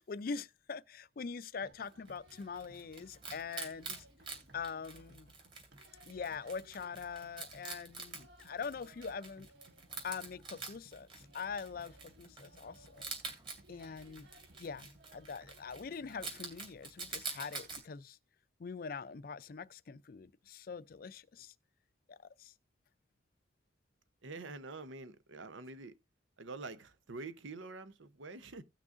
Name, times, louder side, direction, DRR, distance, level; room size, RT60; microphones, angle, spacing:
voice 1, 0.0-4.1 4.5-5.3 6.1-9.5 10.0-13.1 13.7-14.3 14.6-18.2 18.6-21.5 22.1-22.5, left 5 dB, 50° left, 0.4 m, -43 dB
sound 1, 1.6-16.6, right 2 dB, 60° right, 1.4 m, -62 dB
Wild animals, 1.8-17.8, right 4 dB, 25° right, 2.5 m, -47 dB
voice 2, 24.2-26.0 26.4-28.6, right 3 dB, 85° right, 0.8 m, -46 dB
17.0 x 6.1 x 2.5 m
head